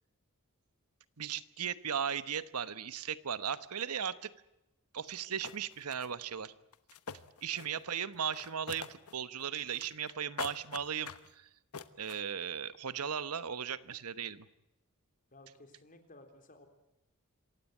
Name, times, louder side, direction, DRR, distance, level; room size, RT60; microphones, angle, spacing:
voice 1, 1.2-4.3 4.9-6.5 7.4-11.5 12.0-14.5, right 8 dB, 85° right, 14 dB, 1.1 m, -37 dB
sound 1, 5.1-5.2 5.4-6.1 6.7-7.8 8.1-9.1 9.4-10.1 10.4-11.3 11.7-12.2, left 6 dB, 75° left, 1.2 m, -44 dB
voice 2, 15.3-16.7, left 2 dB, 40° left, 6 dB, 3.7 m, -56 dB
26.5 x 16.5 x 9.5 m, 0.93 s
head